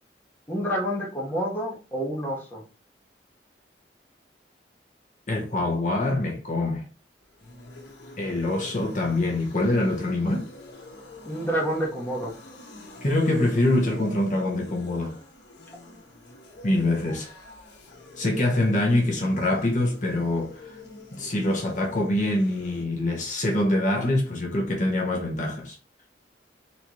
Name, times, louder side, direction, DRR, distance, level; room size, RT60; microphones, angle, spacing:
voice 1, 0.5-2.6 11.2-12.4, equal, 10° left, 1.2 m, -28 dB
voice 2, 5.3-6.8 8.2-10.5 13.0-15.2 16.6-17.3 18.2-20.6 21.1-25.8, left 1 dB, 45° left, 1.0 m, -24 dB
sound 1, 7.2-22.8, left 2 dB, 90° left, 1.2 m, -46 dB
4.0 x 3.2 x 3.0 m
head